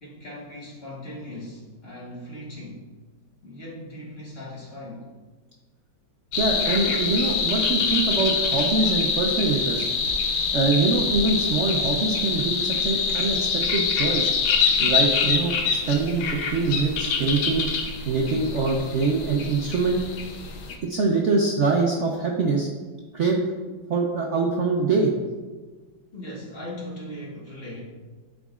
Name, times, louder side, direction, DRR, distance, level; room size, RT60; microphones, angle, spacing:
voice 1, 0.0-2.8 3.4-5.1 26.1-27.8, left 1 dB, 35° left, -5 dB, 1.6 m, -39 dB
sound 1, 6.3-20.8, left 5 dB, 85° left, 1.6 m, -25 dB
voice 2, 6.4-9.9 10.5-14.2 14.8-17.7 18.1-20.0 20.8-22.7 23.1-23.4 23.9-25.1, right 3 dB, 85° right, -1 dB, 0.6 m, -24 dB
12.0 x 5.1 x 2.4 m, 1.3 s
omnidirectional pair, 2.1 m